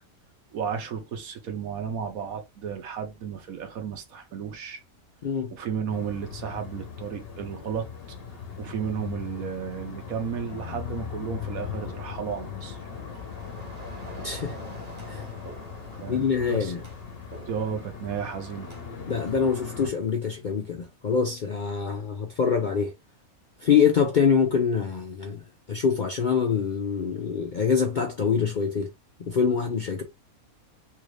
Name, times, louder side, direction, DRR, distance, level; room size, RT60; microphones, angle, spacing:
voice 1, 0.5-4.8 5.5-7.9 8.6-12.8 15.9-16.7 17.5-18.7, right 7 dB, 75° right, 1.2 m, -33 dB
voice 2, 5.2-5.6 14.2-14.6 15.1-15.2 16.1-16.8 19.1-22.9 23.6-25.4 25.7-28.9 29.3-30.0, left 6 dB, 65° left, 0.4 m, -25 dB
sound 1, 5.9-19.9, left 7 dB, 50° left, 1.0 m, -39 dB
sound 2, 12.2-18.8, right 2 dB, 40° right, 1.0 m, -47 dB
3.4 x 2.5 x 3.1 m
omnidirectional pair, 1.5 m